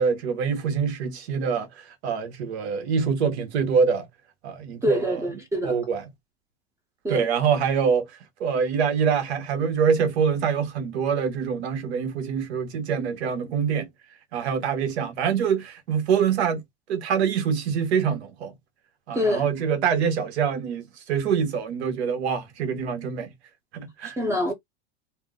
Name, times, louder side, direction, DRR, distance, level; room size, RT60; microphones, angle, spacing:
voice 1, 0.0-4.1 4.4-5.3 5.6-6.1 7.1-8.1 8.4-13.9 14.3-16.6 16.9-18.5 19.1-23.3 23.7-24.2, right 6 dB, 80° right, 1.2 m, -25 dB
voice 2, 4.8-5.8 7.0-7.3 19.1-19.5 24.2-24.5, equal, 10° right, 0.6 m, -25 dB
3.2 x 2.1 x 3.7 m
supercardioid pair, 125°, 32 cm